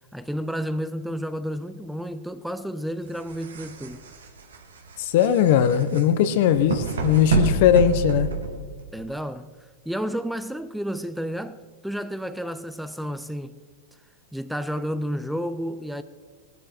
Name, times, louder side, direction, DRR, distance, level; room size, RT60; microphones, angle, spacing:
voice 1, 0.1-4.0 8.9-9.5 9.9-13.6 14.3-16.0, equal, ahead, 0.5 m, -31 dB
sound 1, 3.1-9.0, right 5 dB, 90° right, 2.0 m, -28 dB
voice 2, 5.0-8.3, left 10 dB, 60° left, 1.0 m, -19 dB
18.0 x 11.5 x 4.6 m
hypercardioid pair, 120°, 0 cm